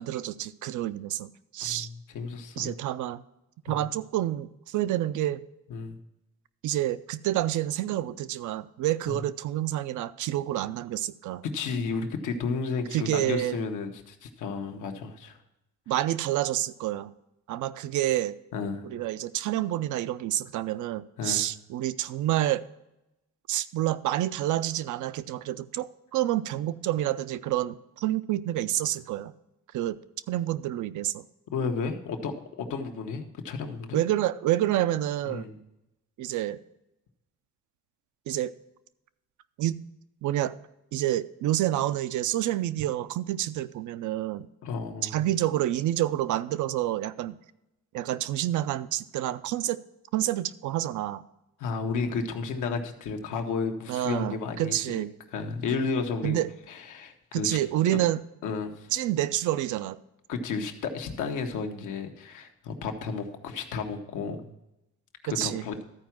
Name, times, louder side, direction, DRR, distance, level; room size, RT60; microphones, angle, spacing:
voice 1, 0.0-1.9 2.6-3.2 3.7-5.4 6.6-11.4 12.9-13.6 15.9-17.1 17.5-18.3 18.8-22.6 23.5-29.3 29.7-30.0 30.3-31.2 33.9-35.5 36.2-36.6 38.3-38.5 39.6-39.8 40.2-40.6 40.9-44.5 45.0-47.4 47.9-49.8 50.1-51.2 53.9-55.1 56.2-56.5 57.3-58.2 58.9-60.0 65.2-65.7, right 13 dB, 75° right, 15 dB, 0.6 m, -28 dB
voice 2, 1.6-2.7 3.7-3.8 5.7-6.0 9.1-9.2 11.5-15.4 18.5-18.9 21.2-21.4 31.5-34.0 35.2-35.6 44.6-45.2 51.6-55.0 55.3-57.6 57.9-58.0 58.4-58.9 60.3-64.5 65.2-65.7, left 4 dB, 85° left, 4 dB, 1.2 m, -32 dB
13.5 x 4.7 x 5.9 m, 0.91 s
cardioid pair, 90°, 30 cm